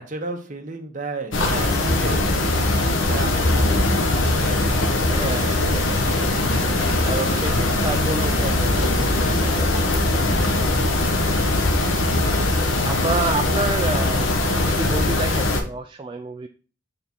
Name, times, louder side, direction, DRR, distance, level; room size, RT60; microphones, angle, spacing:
voice 1, 0.0-1.4 1.8-2.3 3.0-4.9 12.8-13.2, right 2 dB, 40° right, 4 dB, 1.0 m, -34 dB
sound 1, 1.3-15.6, left 2 dB, 85° left, 1.0 m, -21 dB
voice 2, 1.4-1.9 3.1-3.2 5.1-6.1 7.0-11.0 12.8-16.5, right 3 dB, 25° right, 5 dB, 0.3 m, -30 dB
sound 2, 6.2-10.2, equal, 25° left, 1.9 m, -36 dB
6.7 x 3.6 x 4.3 m, 0.40 s
head